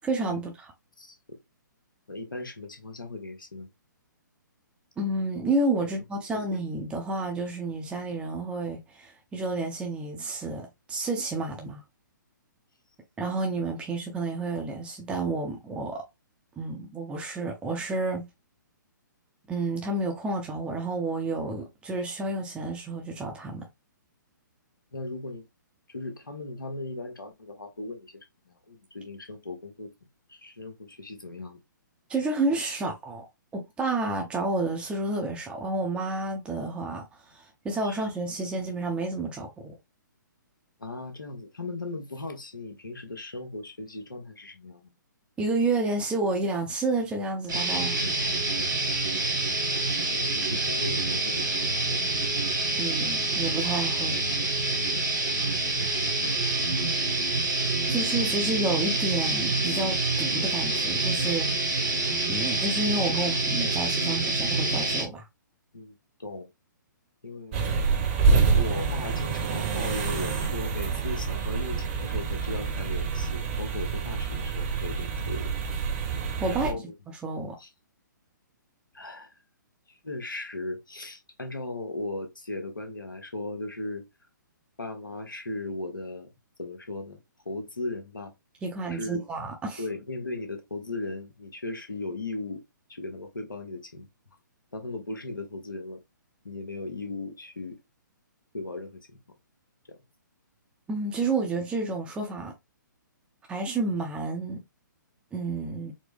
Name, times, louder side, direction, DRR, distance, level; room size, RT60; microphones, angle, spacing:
voice 1, 0.0-0.7 5.0-11.8 13.2-16.0 16.6-18.3 19.5-23.7 32.1-33.3 33.5-39.7 45.4-48.0 52.8-54.2 57.9-61.5 62.3-65.3 76.4-76.7 77.2-77.6 88.6-89.8 100.9-102.5 103.5-104.6 105.3-105.9, right 2 dB, 10° right, 0.7 m, -30 dB
voice 2, 1.0-1.4 2.1-3.7 5.8-5.9 6.3-6.5 24.9-25.5 25.9-29.9 30.3-31.6 37.8-38.0 40.8-44.9 50.1-52.1 55.5-56.4 61.2-61.4 63.2-63.4 65.7-66.5 67.2-67.7 68.5-75.5 76.5-76.8 77.6-77.7 78.9-79.3 79.9-84.1 84.8-86.3 86.6-88.3 88.9-89.2 89.8-92.6 92.9-94.1 94.7-96.0 96.4-97.8 98.5-99.2 99.9-100.0, left 2 dB, 85° left, 1.1 m, -37 dB
sound 1, 47.5-65.0, right 2 dB, 65° right, 1.4 m, -27 dB
sound 2, 67.5-76.7, right 5 dB, 35° right, 1.0 m, -27 dB
4.2 x 2.1 x 3.4 m
figure-of-eight pair, 125°, 11 cm